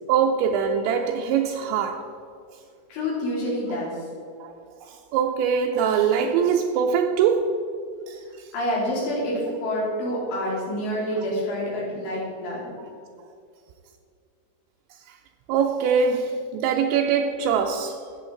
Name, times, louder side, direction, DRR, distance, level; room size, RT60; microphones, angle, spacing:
voice 1, 0.1-2.1 4.4-4.5 4.8-7.6 8.1-8.2 12.8-12.9 15.5-18.0, right 7 dB, 85° right, 2.8 m, -23 dB
voice 2, 2.9-4.1 8.5-12.7, equal, 70° left, 5.1 m, -27 dB
14.0 x 7.3 x 3.8 m
omnidirectional pair, 5.4 m